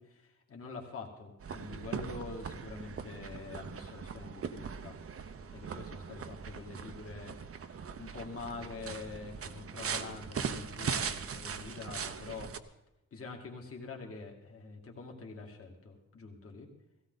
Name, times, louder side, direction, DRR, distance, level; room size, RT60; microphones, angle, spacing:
voice 1, 0.0-5.0 5.5-7.3 7.6-12.5 13.1-16.7, left 4 dB, 45° left, 1 dB, 2.5 m, -45 dB
sound 1, 1.4-12.6, right 6 dB, 45° right, 0.8 m, -40 dB
17.5 x 16.5 x 4.1 m, 0.92 s
wide cardioid pair, 160°, 30 cm